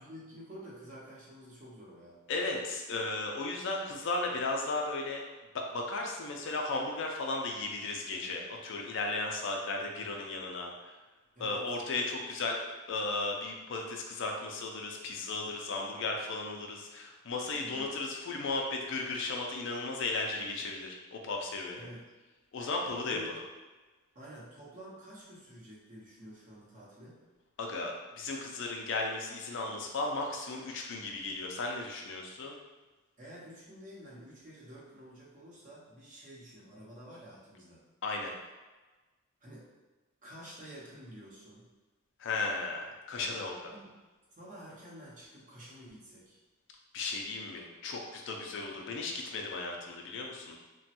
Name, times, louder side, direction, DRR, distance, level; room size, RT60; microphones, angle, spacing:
voice 1, 0.0-2.2 11.3-11.8 17.6-17.9 21.8-22.0 23.0-23.4 24.1-27.2 33.2-37.8 39.4-39.7 40.2-41.7 43.7-43.9 44.4-46.4, equal, 40° right, -6 dB, 0.8 m, -50 dB
voice 2, 2.3-5.2 5.5-10.9 11.4-12.6 12.9-21.9 22.5-23.2 27.6-32.6 38.0-38.3 42.2-43.7 46.9-50.6, left 3 dB, 60° left, 1 dB, 0.4 m, -35 dB
3.0 x 2.2 x 2.8 m, 1.2 s
head